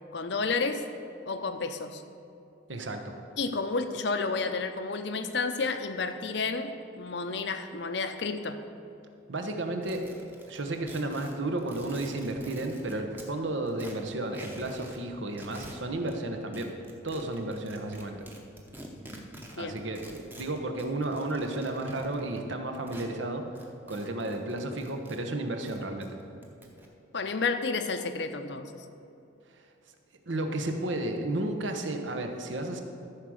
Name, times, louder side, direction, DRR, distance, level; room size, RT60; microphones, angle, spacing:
voice 1, 0.1-0.8 1.2-2.0 3.4-8.6 19.6-19.8 27.1-28.7, left 4 dB, 60° left, 8 dB, 0.6 m, -31 dB
voice 2, 2.7-3.1 9.3-10.1 10.5-16.7 17.0-18.2 19.6-23.5 23.9-26.2 30.3-32.8, right 2 dB, 75° right, 5 dB, 1.0 m, -33 dB
sound 1, 9.8-13.3 13.7-15.0 15.3-16.2 16.5-23.1 23.5-25.2 25.5-26.9, right 1 dB, 10° right, 0.8 m, -47 dB
13.5 x 4.9 x 6.3 m, 2.8 s
head